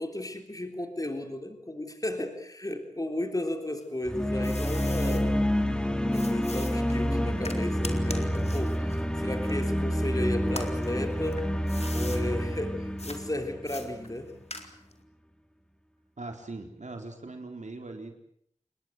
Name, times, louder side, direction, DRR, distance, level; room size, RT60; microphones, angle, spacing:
voice 1, 0.0-5.4 6.1-11.5 11.9-14.3, left 1 dB, 30° left, 5 dB, 3.6 m, -34 dB
sound 1, 3.8-5.2 6.1-10.0 10.4-12.2 13.0-13.2 13.7-15.0, left 2 dB, 55° left, 4.1 m, -42 dB
sound 2, 4.1-14.1, equal, 5° left, 2.6 m, -28 dB
voice 2, 16.2-18.2, right 2 dB, 70° right, 4 dB, 4.1 m, -40 dB
28.5 x 21.5 x 8.1 m, 0.70 s
wide cardioid pair, 60°, 13 cm